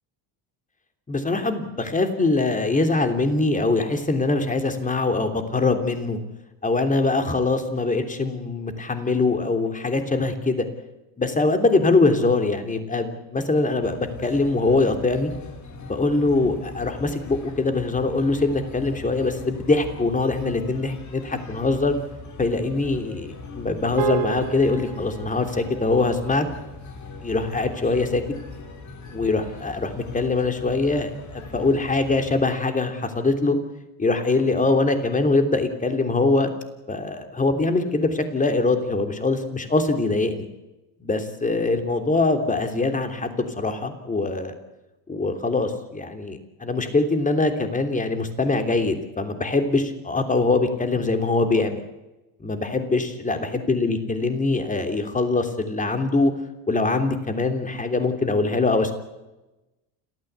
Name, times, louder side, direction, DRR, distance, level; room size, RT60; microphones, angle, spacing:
voice 1, 1.1-6.2 6.6-10.7 11.2-15.3 15.9-21.9 22.4-26.5 27.2-28.2 29.1-33.6 34.0-36.5 36.9-40.5 41.0-44.5 45.1-51.8 52.4-56.3 56.7-58.9, left 3 dB, 15° left, 7 dB, 3.3 m, -23 dB
sound 1, 13.8-32.4, left 3 dB, 40° left, 3.9 m, -40 dB
sound 2, 24.0-28.5, right 9 dB, 50° right, 2.2 m, -34 dB
29.5 x 14.0 x 8.2 m, 1.0 s
cardioid pair, 125°, 45 cm